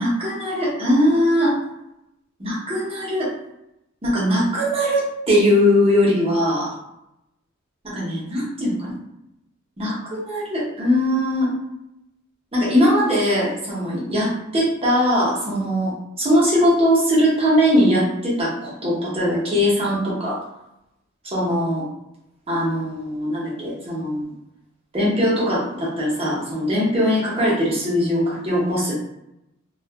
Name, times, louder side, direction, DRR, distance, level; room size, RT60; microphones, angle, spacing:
voice 1, 0.0-1.5 2.4-3.3 4.0-6.7 7.9-8.9 9.8-11.5 12.5-20.4 21.2-21.8 22.5-24.2 24.9-28.9, equal, 30° right, -6 dB, 0.9 m, -20 dB
2.5 x 2.4 x 2.3 m, 0.86 s
head